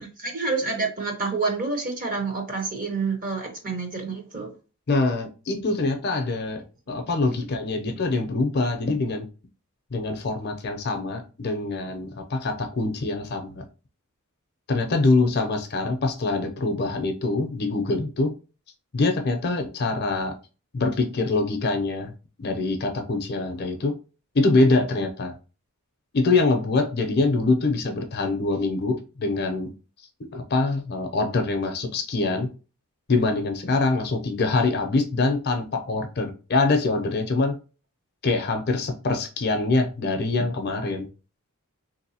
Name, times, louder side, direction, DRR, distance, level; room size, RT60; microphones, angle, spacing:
voice 1, 0.2-4.5, right 4 dB, 40° right, 2 dB, 0.8 m, -28 dB
voice 2, 4.9-9.3 9.9-13.6 14.7-18.3 18.9-20.3 20.7-22.1 22.4-24.0 24.3-25.3 26.1-29.7 30.2-32.5 33.1-37.6 38.2-41.1, left 3 dB, 45° left, 6 dB, 0.5 m, -24 dB
3.5 x 2.6 x 2.8 m, 0.33 s
head